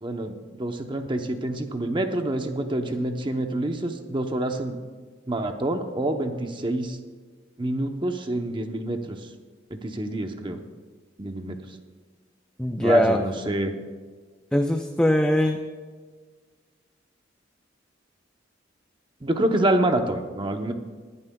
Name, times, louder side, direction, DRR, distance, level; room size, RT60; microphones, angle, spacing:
voice 1, 0.0-4.8 5.3-7.0 7.6-9.2 9.7-10.6 11.2-11.6 12.8-13.7 19.2-20.7, right 1 dB, 25° right, 5 dB, 0.8 m, -27 dB
voice 2, 12.6-13.2 14.5-15.6, left 1 dB, 5° left, 4 dB, 0.4 m, -21 dB
20.5 x 11.0 x 2.3 m, 1.5 s
head